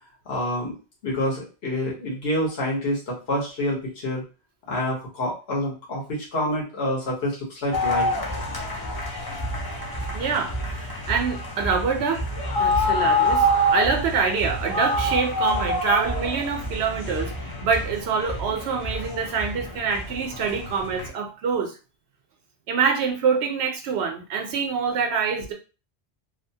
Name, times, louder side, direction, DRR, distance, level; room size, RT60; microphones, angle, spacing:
voice 1, 0.2-0.8 1.0-4.2 4.7-8.1, left 1 dB, 65° left, -3 dB, 1.2 m, -27 dB
sound 1, 7.7-21.1, left 1 dB, 30° left, 0.4 m, -27 dB
voice 2, 10.1-12.2 12.6-17.3 17.6-21.7 22.7-25.5, right 5 dB, 75° right, 3 dB, 0.9 m, -25 dB
2.8 x 2.1 x 2.7 m, 0.33 s
omnidirectional pair, 1.1 m